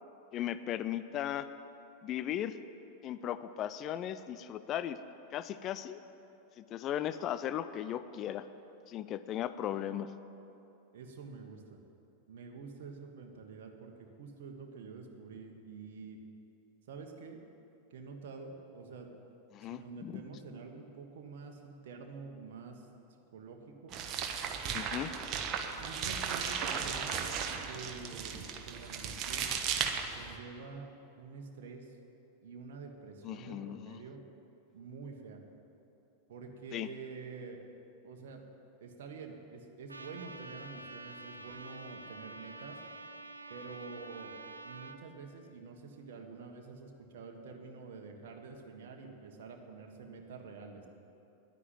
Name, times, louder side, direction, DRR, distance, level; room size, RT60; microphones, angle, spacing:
voice 1, 0.3-1.5 2.0-2.6 3.0-5.0 5.3-6.0 6.6-8.5 8.9-10.1 19.5-20.2 24.7-25.1 33.2-34.0 36.7-36.9, left 11 dB, 35° left, 13 dB, 0.5 m, -37 dB
voice 2, 10.9-11.6 12.3-16.2 16.9-17.4 17.9-19.1 19.7-22.9 23.3-23.9 25.8-29.5 30.1-30.9 31.2-32.0 32.4-34.2 34.7-35.4 36.3-37.6 38.0-38.4 38.8-42.8 43.5-44.3 44.6-50.9, right 4 dB, 55° right, 2 dB, 1.5 m, -47 dB
sound 1, 23.9-30.4, right 7 dB, 35° right, 1.1 m, -36 dB
Trumpet, 39.9-45.0, right 2 dB, 80° right, 0.7 m, -48 dB
11.0 x 9.9 x 9.3 m, 2.8 s
figure-of-eight pair, 90°, 0 cm